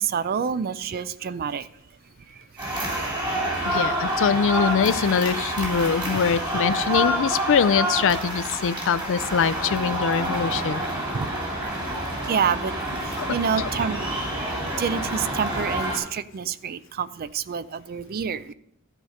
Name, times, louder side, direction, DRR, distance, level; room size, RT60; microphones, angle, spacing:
voice 1, 0.0-1.7 11.1-11.3 12.3-12.7 13.3-14.2 14.8-18.5, right 7 dB, 45° right, 16 dB, 0.4 m, -27 dB
sound 1, 2.6-16.0, right 1 dB, 20° right, 3.0 m, -28 dB
voice 2, 3.7-10.8 13.2-13.3 13.6-13.7, left 6 dB, 60° left, 15 dB, 0.4 m, -23 dB
13.5 x 4.9 x 6.5 m, 0.74 s
head